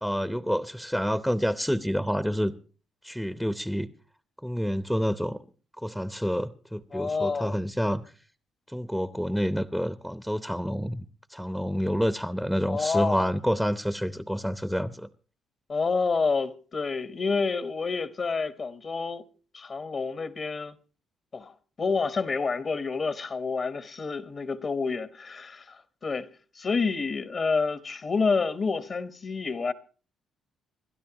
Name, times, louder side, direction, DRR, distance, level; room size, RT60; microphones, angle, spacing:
voice 1, 0.0-2.5 3.0-3.9 4.4-5.4 5.8-8.0 8.7-15.1, equal, ahead, 0.7 m, -28 dB
voice 2, 6.9-7.6 12.7-13.3 15.7-19.2 19.5-20.7 21.3-26.3 26.5-29.7, left 4 dB, 45° left, 1.0 m, -28 dB
27.0 x 12.0 x 2.9 m
cardioid pair, 90°, 0 cm